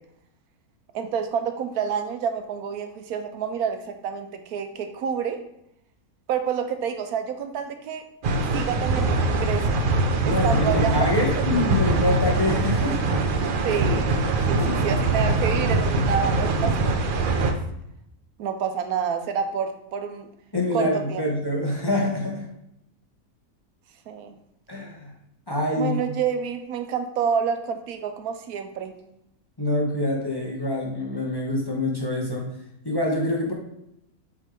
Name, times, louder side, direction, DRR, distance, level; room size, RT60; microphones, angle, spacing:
voice 1, 0.9-5.4 6.3-8.0 8.5-9.8 10.2-10.9 11.4-11.5 13.6-14.2 14.5-17.6 18.4-20.3 20.7-21.2 24.1-24.4 25.8-28.9, right 7 dB, 85° right, 7 dB, 1.2 m, -28 dB
sound 1, 8.2-17.5, right 3 dB, 60° right, 0.5 m, -23 dB
voice 2, 10.2-13.0 14.6-14.8 16.5-16.7 20.5-22.4 24.7-25.1 25.5-26.0 29.6-32.4 32.8-33.5, left 2 dB, 20° left, -2 dB, 1.0 m, -25 dB
7.8 x 3.5 x 3.7 m, 0.81 s
omnidirectional pair, 1.6 m